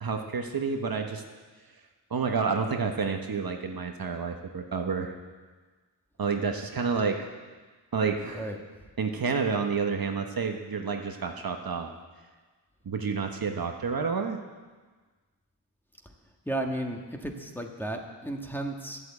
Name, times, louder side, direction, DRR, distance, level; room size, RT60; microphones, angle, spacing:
voice 1, 0.0-1.2 2.1-5.1 6.2-7.2 7.9-8.5 9.0-11.9 12.8-14.4, right 5 dB, 50° right, 4 dB, 1.2 m, -29 dB
voice 2, 8.2-8.6 16.4-19.0, right 1 dB, 5° left, 2 dB, 1.6 m, -34 dB
12.0 x 8.2 x 8.4 m, 1.4 s
cardioid pair, 60°, 44 cm